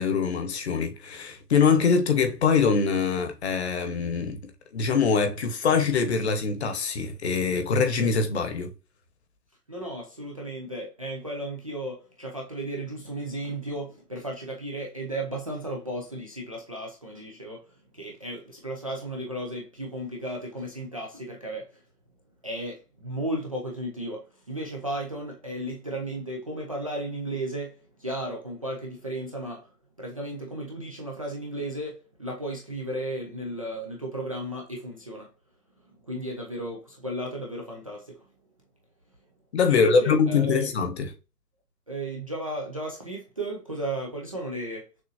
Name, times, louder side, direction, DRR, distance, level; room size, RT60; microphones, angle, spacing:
voice 1, 0.0-8.7 39.5-41.1, left 5 dB, 40° left, 1.1 m, -23 dB
voice 2, 9.7-21.8 22.4-29.7 30.0-35.3 36.0-38.2 39.7-40.7 41.9-44.9, right 1 dB, 20° right, 0.5 m, -34 dB
6.4 x 2.7 x 2.6 m
figure-of-eight pair, 145°, 48 cm